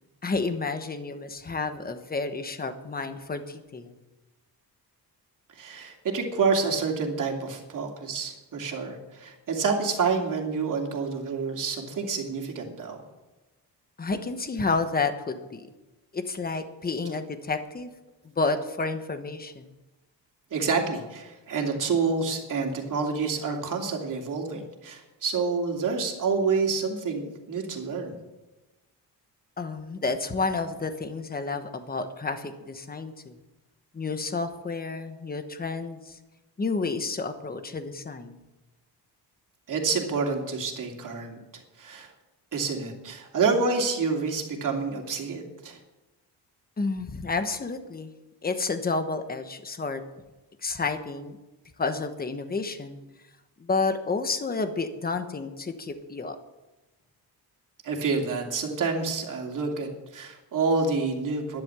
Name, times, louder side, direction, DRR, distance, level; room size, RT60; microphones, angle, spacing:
voice 1, 0.2-3.9 14.0-15.7 16.1-17.9 18.2-19.7 29.6-33.3 33.9-36.2 36.6-38.4 46.8-48.1 48.4-50.0 50.6-51.4 51.8-53.0 53.6-56.4, left 4 dB, 20° left, 8 dB, 1.2 m, -30 dB
voice 2, 5.5-13.0 20.5-28.1 39.7-41.4 41.8-42.1 42.5-45.8 57.8-61.6, right 4 dB, 50° right, 1 dB, 2.8 m, -28 dB
12.0 x 10.5 x 7.0 m, 1.1 s
cardioid pair, 145°, 40 cm